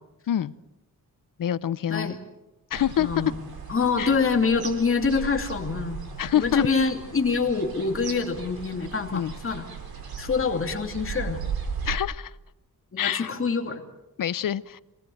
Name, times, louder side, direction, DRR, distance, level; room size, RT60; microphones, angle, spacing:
voice 1, 1.4-2.1 2.7-3.1 4.0-4.1 6.2-6.7 9.1-9.3 11.8-12.3 13.0-13.3 14.2-14.8, left 10 dB, 65° left, 17 dB, 0.8 m, -26 dB
sound 1, 2.7-12.0, right 6 dB, 85° right, 3.9 m, -37 dB
voice 2, 3.0-3.4 3.7-6.0 6.3-9.7 10.2-11.4 12.9-13.8, left 4 dB, 35° left, 4 dB, 2.6 m, -25 dB
26.5 x 19.5 x 7.9 m, 0.96 s
wide cardioid pair, 180°, 35 cm